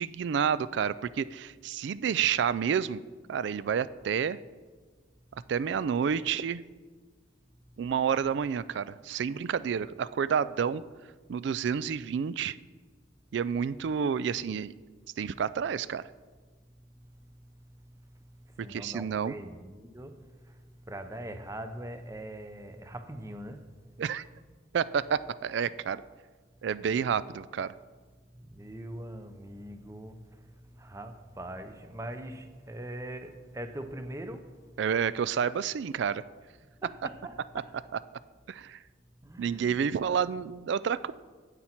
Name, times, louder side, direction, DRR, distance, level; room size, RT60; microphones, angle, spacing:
voice 1, 0.0-3.0 3.3-4.4 5.5-6.6 7.8-10.8 11.3-12.6 13.3-14.7 15.2-16.0 18.7-19.3 24.0-24.3 24.7-26.0 26.6-27.7 34.8-36.2 38.5-38.8 39.4-41.1, right 7 dB, 65° right, 0.3 m, -29 dB
voice 2, 18.4-23.6 26.8-27.0 28.3-34.5 36.8-37.6 39.2-40.2, right 1 dB, 15° right, 0.6 m, -42 dB
9.8 x 8.5 x 4.5 m
head